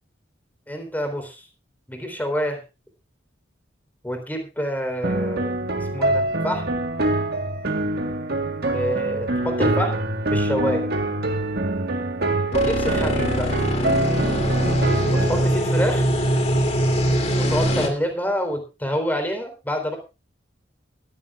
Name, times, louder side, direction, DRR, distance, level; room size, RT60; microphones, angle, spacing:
voice 1, 0.7-1.4 1.9-2.6 4.0-5.6 5.9-6.6 8.7-10.0 10.3-10.9 12.5-13.5 15.1-16.1 17.3-20.0, equal, 10° left, 5 dB, 3.7 m, -27 dB
sound 1, 5.0-15.5, right 2 dB, 60° right, 1.8 m, -24 dB
sound 2, 12.5-17.9, equal, 35° left, 3.0 m, -22 dB
20.5 x 14.0 x 2.5 m, 0.30 s
head